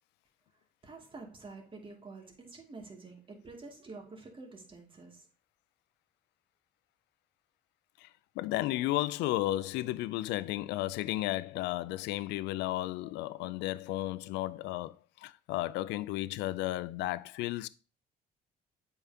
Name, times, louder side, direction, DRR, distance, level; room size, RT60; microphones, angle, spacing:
voice 1, 0.8-5.3, right 3 dB, 30° right, 2.3 m, -48 dB
voice 2, 8.4-17.7, left 16 dB, 75° left, 0.4 m, -33 dB
8.1 x 5.5 x 2.8 m
supercardioid pair, 75°, 18 cm